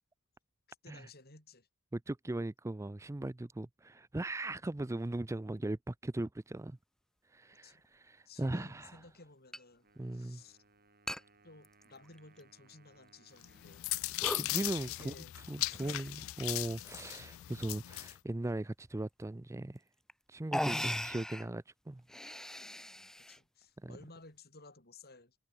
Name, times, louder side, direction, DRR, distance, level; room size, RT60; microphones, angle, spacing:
voice 1, 0.8-1.7 7.6-7.8 8.3-9.9 10.1-10.6 11.4-13.9 14.9-15.3 15.7-16.3 22.8-25.4, left 3 dB, 45° left, 7.0 m, -56 dB
voice 2, 1.9-6.8 7.3-9.0 10.0-10.4 14.3-15.1 15.5-19.8 20.3-22.0 23.8-24.0, right 1 dB, 15° right, 0.4 m, -38 dB
sound 1, 7.8-7.9 9.5-9.6 10.0-10.1 11.1-11.2 11.6-12.4 12.9-13.0 13.7-13.9 14.2-14.5 15.7-16.2 17.0-17.4 19.3-19.4 20.1-20.2 20.5-21.5 22.0-23.4, equal, ahead, 1.3 m, -39 dB
Wind instrument woodwind instrument, 9.8-15.5, right 3 dB, 45° right, 6.9 m, -68 dB
sound 2, 13.4-18.2, left 19 dB, 65° left, 0.3 m, -38 dB
head